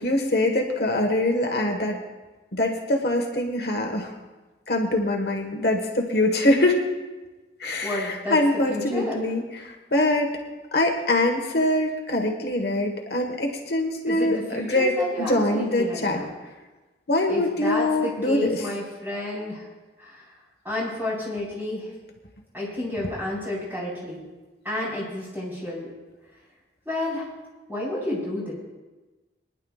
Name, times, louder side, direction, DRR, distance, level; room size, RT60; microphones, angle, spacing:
voice 1, 0.0-2.0 2.5-4.1 4.7-6.8 7.6-10.4 10.7-16.2 17.1-18.6, left 1 dB, 60° left, 2 dB, 1.3 m, -23 dB
voice 2, 7.8-8.4 8.7-9.2 14.0-16.3 17.3-19.6 20.0-20.2 20.6-21.9 22.5-24.2 24.6-25.9 26.9-27.3 27.7-28.5, left 1 dB, 10° right, -7 dB, 4.4 m, -30 dB
23.0 x 10.5 x 2.4 m, 1.2 s
head